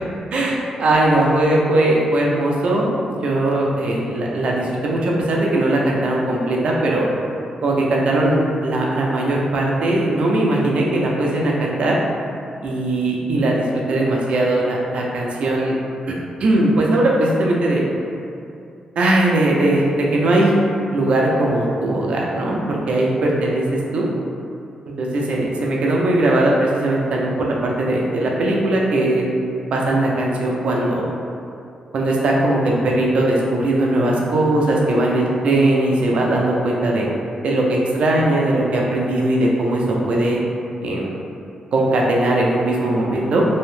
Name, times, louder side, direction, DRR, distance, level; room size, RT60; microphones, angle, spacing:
voice 1, 0.3-2.9 3.2-7.1 7.6-12.0 12.6-15.8 16.1-17.8 19.0-20.5 20.9-23.7 23.9-24.1 25.0-29.2 29.7-31.1 31.9-37.1 37.4-40.4 40.8-41.1 41.7-43.4, right 1 dB, 60° right, -2 dB, 0.4 m, -19 dB
2.6 x 2.0 x 3.1 m, 2.5 s
wide cardioid pair, 135°, 2 cm